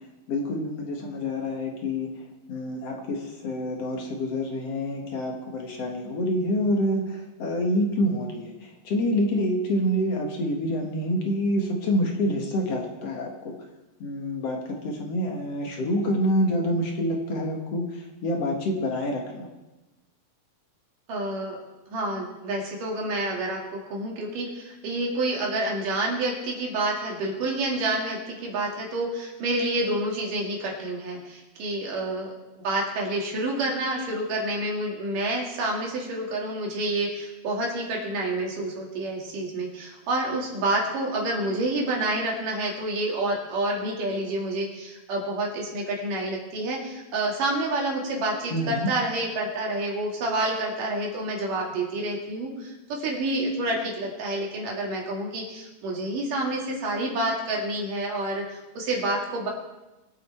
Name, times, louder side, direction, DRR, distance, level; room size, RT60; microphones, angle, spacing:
voice 1, 0.3-2.2 2.5-13.6 14.0-19.5 48.5-48.9, equal, 50° left, 1 dB, 2.2 m, -27 dB
voice 2, 21.1-21.6 21.9-59.5, right 2 dB, 65° right, -1 dB, 3.8 m, -28 dB
23.0 x 8.0 x 4.4 m, 1.1 s
omnidirectional pair, 4.2 m